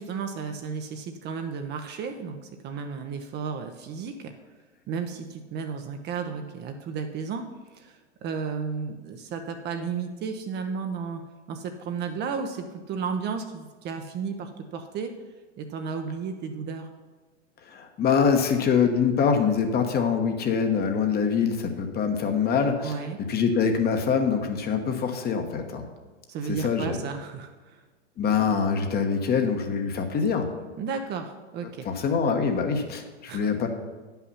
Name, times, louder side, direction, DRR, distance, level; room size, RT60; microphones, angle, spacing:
voice 1, 0.0-4.3 4.9-7.4 7.7-11.2 11.5-15.1 15.6-16.9 22.8-23.2 26.3-27.8 30.8-31.9 33.3-33.4, right 5 dB, 30° right, 5 dB, 0.7 m, -33 dB
voice 2, 17.7-23.0 23.3-25.9 26.4-27.0 28.2-30.5 31.6-33.7, left 6 dB, 25° left, 5 dB, 1.1 m, -24 dB
9.7 x 5.7 x 5.6 m, 1.3 s
hypercardioid pair, 105°, 35 cm